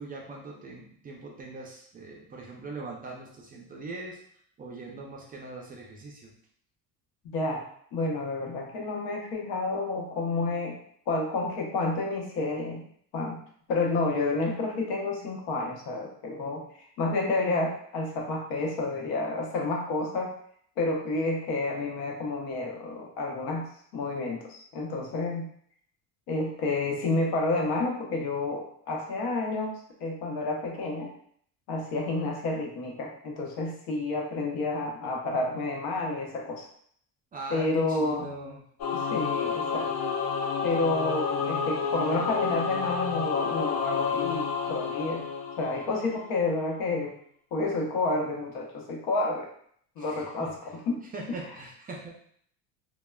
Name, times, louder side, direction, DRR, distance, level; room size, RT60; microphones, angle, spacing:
voice 1, 0.0-4.2 4.6-6.3 37.3-38.6 50.0-50.5 51.1-52.1, right 3 dB, 25° right, -1 dB, 0.4 m, -41 dB
voice 2, 7.3-7.6 7.9-10.8 11.1-12.8 13.1-13.4 13.7-20.3 20.8-23.7 23.9-25.5 26.3-31.1 31.7-36.7 37.5-38.3 38.9-39.9 40.6-45.2 45.6-47.1 47.5-49.5 50.0-51.0, left 2 dB, 80° left, 0 dB, 0.8 m, -30 dB
Singing / Musical instrument, 38.8-46.3, left 6 dB, 50° left, 0.6 m, -30 dB
3.1 x 2.1 x 2.2 m, 0.63 s
cardioid pair, 135°, 36 cm